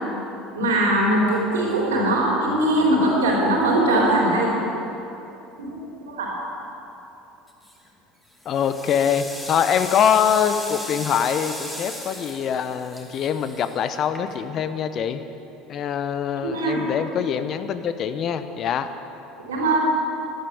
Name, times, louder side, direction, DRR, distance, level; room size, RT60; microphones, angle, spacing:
voice 1, 0.6-4.5 5.6-6.3 16.4-16.8 19.4-19.8, right 1 dB, 85° right, -3 dB, 4.0 m, -21 dB
sound 1, 7.5-7.9 8.3-14.6, left 1 dB, 10° left, 2.5 m, -36 dB
voice 2, 8.4-15.2 15.7-18.9, left 8 dB, 50° left, 10 dB, 0.9 m, -24 dB
12.5 x 12.0 x 7.0 m, 3.0 s
hypercardioid pair, 75°, 0 cm